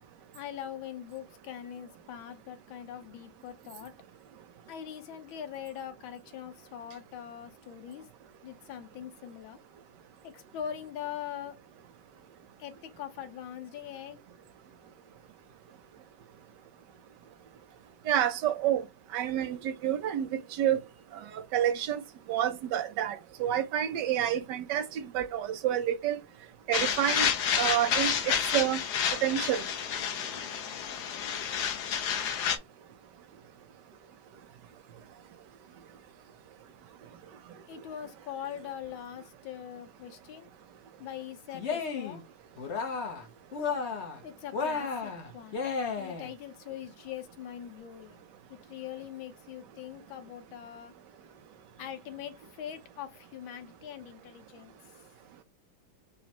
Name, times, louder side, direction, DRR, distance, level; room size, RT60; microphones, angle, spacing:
voice 1, 0.3-3.9 4.7-8.1 8.4-9.6 10.2-11.6 12.6-14.2 37.7-40.5 41.0-42.2 44.2-45.6 46.0-48.2 48.5-50.9 51.8-54.7, left 10 dB, 85° left, 1.6 m, -42 dB
voice 2, 18.1-18.8 19.1-20.8 21.1-22.0 22.3-26.2 26.7-28.8 29.2-29.6, right 11 dB, 70° right, 1.3 m, -29 dB
sound 1, 26.7-32.6, left 8 dB, 65° left, 1.2 m, -30 dB
Cheering, 41.5-42.2 42.6-43.3 43.5-44.2 44.5-46.3, left 5 dB, 45° left, 1.0 m, -33 dB
5.2 x 2.3 x 2.9 m
omnidirectional pair, 2.1 m